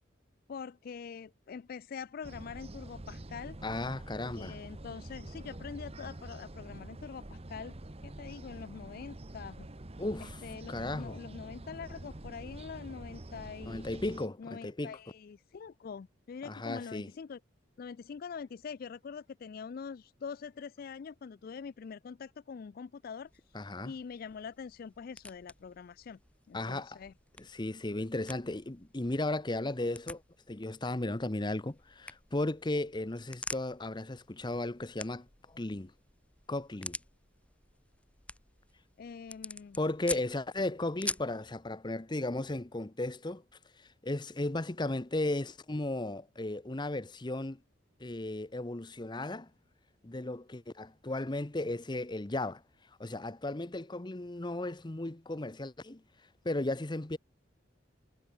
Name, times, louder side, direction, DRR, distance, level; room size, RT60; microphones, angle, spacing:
voice 1, 0.5-3.6 4.2-7.8 8.0-9.7 10.2-13.8 14.4-17.4 17.8-23.4 23.8-26.2 26.5-27.1 39.0-39.8, left 6 dB, 50° left, 0.3 m, -44 dB
sound 1, 2.2-14.3, right 1 dB, 30° right, 1.1 m, -46 dB
voice 2, 3.6-4.6 10.0-10.4 10.7-11.2 13.7-15.0 16.4-17.1 23.5-23.9 26.5-27.0 27.4-30.2 30.5-35.9 36.5-37.0 39.8-43.4 43.8-47.6 48.0-49.5 50.0-52.6 53.0-56.0 56.4-57.2, left 2 dB, 25° left, 0.8 m, -35 dB
sound 2, 23.3-41.4, left 2 dB, 5° left, 1.8 m, -47 dB
head